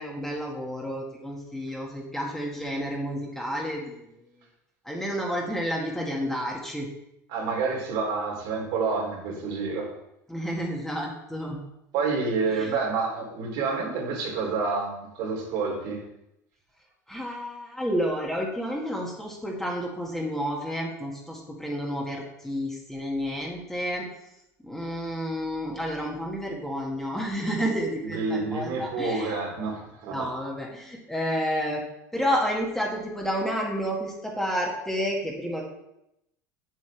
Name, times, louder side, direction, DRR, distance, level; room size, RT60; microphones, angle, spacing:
voice 1, 0.0-4.2 4.8-6.9 10.3-11.6 12.5-12.7 17.1-24.1 24.6-29.4 30.1-31.8 32.1-35.6, equal, 5° left, -2 dB, 2.0 m, -30 dB
voice 2, 7.3-9.9 11.9-16.0 28.0-30.3, right 4 dB, 65° right, -2 dB, 3.1 m, -28 dB
7.5 x 7.5 x 3.4 m, 0.84 s
hypercardioid pair, 90°, 9 cm